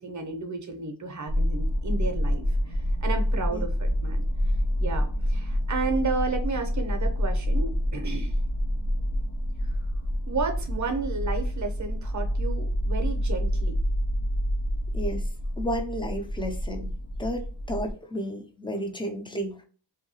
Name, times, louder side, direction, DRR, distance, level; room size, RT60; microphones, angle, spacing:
voice 1, 0.0-4.2 4.8-8.4 9.6-9.8 10.3-13.8, right 4 dB, 40° right, 5 dB, 0.6 m, -32 dB
sound 1, 1.3-17.9, equal, 85° left, 0.8 m, -27 dB
voice 2, 15.6-16.9 17.2-19.6, equal, 10° left, 3 dB, 0.4 m, -32 dB
2.8 x 2.2 x 2.6 m, 0.41 s
wide cardioid pair, 105°, 44 cm